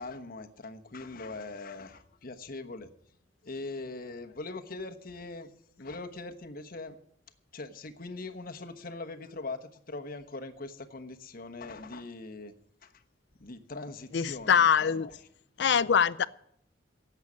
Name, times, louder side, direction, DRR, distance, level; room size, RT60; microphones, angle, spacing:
voice 1, 0.0-2.9 3.4-7.0 7.5-12.5 12.8-12.9 13.4-15.1, left 3 dB, 50° left, 7 dB, 1.1 m, -41 dB
voice 2, 14.1-15.1 15.6-16.3, left 7 dB, 65° left, 18 dB, 0.5 m, -23 dB
11.5 x 8.2 x 9.6 m, 0.69 s
head